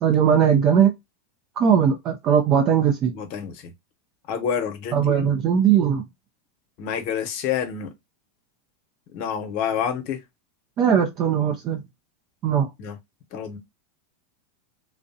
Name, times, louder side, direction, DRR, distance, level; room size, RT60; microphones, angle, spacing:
voice 1, 0.0-0.9 1.6-3.1 4.9-6.0 10.8-11.8 12.4-12.7, right 8 dB, 40° right, 0.5 m, -19 dB
voice 2, 3.1-3.5 4.3-5.3 6.8-7.9 9.1-10.2 12.8-13.0 13.3-13.6, left 8 dB, 55° left, 0.8 m, -28 dB
2.6 x 2.0 x 2.7 m
hypercardioid pair, 110°, 0 cm